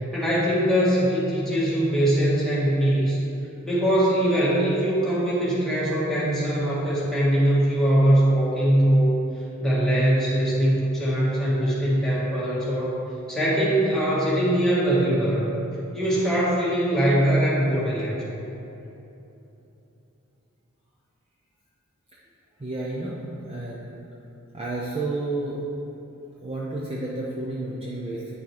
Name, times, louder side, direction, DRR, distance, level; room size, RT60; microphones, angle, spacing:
voice 1, 0.1-3.2 3.6-9.2 9.6-12.9 13.3-15.6 15.9-18.2, right 1 dB, ahead, -8 dB, 1.8 m, -22 dB
voice 2, 22.6-24.1 24.5-25.6 26.4-28.3, right 2 dB, 25° right, -5 dB, 0.7 m, -31 dB
9.3 x 6.1 x 3.4 m, 2.9 s
head